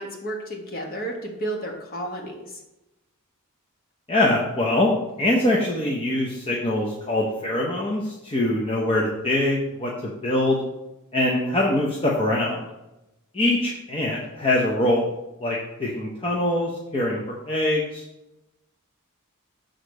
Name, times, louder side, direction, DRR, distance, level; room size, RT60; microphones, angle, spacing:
voice 1, 0.0-2.4, right 1 dB, 40° left, 1 dB, 1.4 m, -32 dB
voice 2, 4.1-4.9 5.2-10.6 11.1-12.7 13.3-15.1 15.4-18.0, left 1 dB, 25° left, -3 dB, 0.8 m, -23 dB
6.6 x 3.9 x 6.3 m, 0.96 s
head